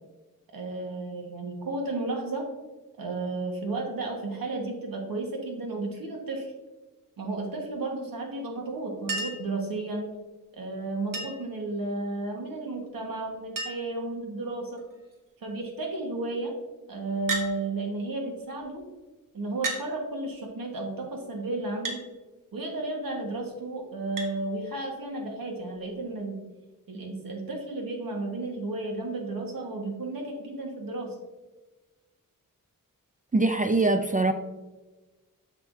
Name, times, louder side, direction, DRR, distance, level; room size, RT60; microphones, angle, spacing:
voice 1, 0.5-2.5 3.0-6.5 7.2-10.1 10.5-14.8 15.4-16.5 16.9-18.8 19.3-22.0 22.5-26.4 26.9-31.2, right 2 dB, 85° right, 1 dB, 1.5 m, -33 dB
Chink clink, 9.1-9.5 11.1-11.5 12.9-13.0 13.2-13.3 13.6-14.0 14.8-15.1 17.3-17.5 18.6-18.7 19.6-19.9 21.8-22.0 24.2-24.3 25.8-25.9, right 2 dB, 70° right, 1.2 m, -33 dB
voice 2, 33.3-34.3, right 2 dB, 25° right, 6 dB, 0.4 m, -23 dB
6.8 x 6.0 x 2.6 m, 1.2 s
wide cardioid pair, 80°, 34 cm